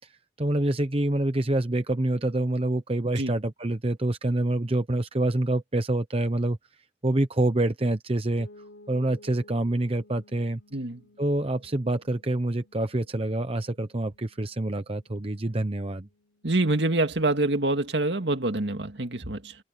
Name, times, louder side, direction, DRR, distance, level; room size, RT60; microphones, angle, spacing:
voice 1, 0.0-6.6 7.0-8.5 8.9-10.6 11.2-16.1, right 1 dB, 35° right, 0.9 m, -26 dB
sound 1, 8.4-18.1, left 1 dB, 85° left, 5.4 m, -56 dB
voice 2, 10.7-11.0 16.4-19.6, right 2 dB, 80° right, 2.0 m, -26 dB
head